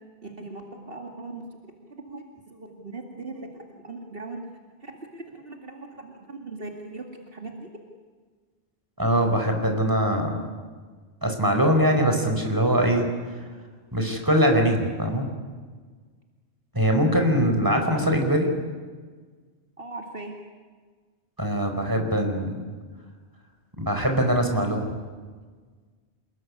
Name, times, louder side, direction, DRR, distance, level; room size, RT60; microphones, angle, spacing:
voice 1, 0.2-4.4 4.8-7.7 19.8-20.4, right 3 dB, 55° right, 2 dB, 2.6 m, -40 dB
voice 2, 9.0-10.5 11.2-13.4 13.9-15.3 16.7-18.5 21.4-22.6 23.8-24.9, equal, 20° right, 4 dB, 4.9 m, -22 dB
28.0 x 21.5 x 9.8 m, 1.5 s
omnidirectional pair, 1.2 m